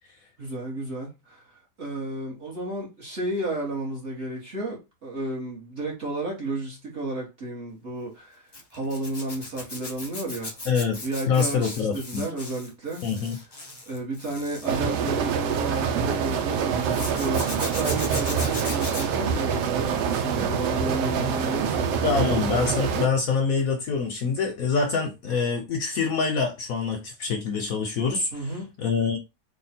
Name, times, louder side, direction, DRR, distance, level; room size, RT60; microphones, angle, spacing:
voice 1, 0.4-10.6 11.0-13.0 13.9-22.3 28.3-28.7, right 2 dB, 45° right, 1.4 m, -32 dB
Zipper (clothing), 8.5-16.0 16.9-20.6 20.9-21.3 23.6-23.7 24.0-24.1, left 2 dB, 30° left, 0.4 m, -38 dB
voice 2, 10.7-11.0 11.3-12.3 13.0-13.4 22.0-28.3 28.8-29.2, left 5 dB, 65° left, 1.0 m, -25 dB
sound 1, 14.7-23.1, right 7 dB, 75° right, 1.2 m, -26 dB
3.5 x 2.3 x 4.1 m
omnidirectional pair, 1.9 m